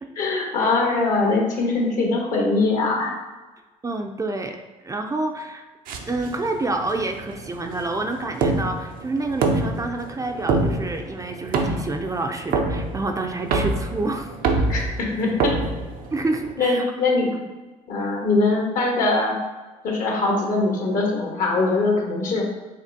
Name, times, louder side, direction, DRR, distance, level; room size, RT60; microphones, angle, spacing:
voice 1, 0.2-3.1 14.7-15.5 16.6-17.3 17.9-19.4 19.8-22.5, left 3 dB, 65° left, -1 dB, 1.2 m, -22 dB
voice 2, 3.8-5.6 6.1-14.3 16.1-16.8 18.0-18.1, right 2 dB, 20° right, 4 dB, 0.4 m, -28 dB
sound 1, 5.9-16.5, right 3 dB, 70° right, 0.6 m, -26 dB
5.0 x 3.0 x 2.7 m, 1.2 s
supercardioid pair, 70°, 15 cm